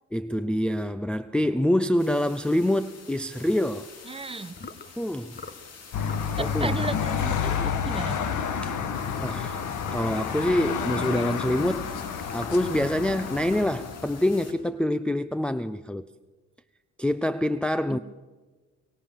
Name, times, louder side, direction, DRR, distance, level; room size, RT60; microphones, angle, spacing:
voice 1, 0.1-3.9 5.0-5.4 6.4-6.7 8.6-8.8 9.2-9.6 9.9-11.9 12.3-16.0 17.0-18.0, left 1 dB, 5° left, 0.7 m, -26 dB
sound 1, 2.0-14.5, left 5 dB, 55° left, 3.7 m, -47 dB
voice 2, 4.0-4.6 6.4-8.2 11.0-11.3 17.9-18.0, right 3 dB, 20° right, 1.1 m, -35 dB
sound 2, 4.5-4.9 5.3-5.6 6.0-6.3 6.7-7.1 7.4-7.8 8.5-11.4 12.1-14.9, left 4 dB, 35° left, 1.7 m, -44 dB
sound 3, 5.9-14.3, left 7 dB, 75° left, 2.3 m, -30 dB
24.0 x 23.5 x 7.4 m
cardioid pair, 90°, 30 cm